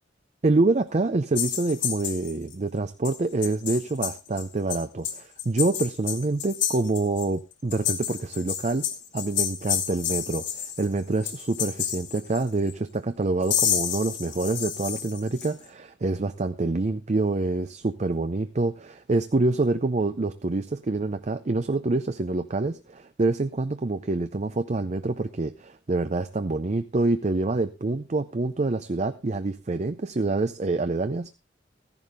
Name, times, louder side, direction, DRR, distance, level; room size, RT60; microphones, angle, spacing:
voice 1, 0.4-8.9 9.1-31.3, right 2 dB, 40° right, 10 dB, 0.5 m, -26 dB
sound 1, 1.4-2.5 3.0-3.2 3.4-4.4 4.7-7.3 7.5-10.9 11.2-12.7 13.4-15.5, left 9 dB, 85° left, 2.6 m, -30 dB
14.5 x 11.0 x 3.5 m, 0.27 s
head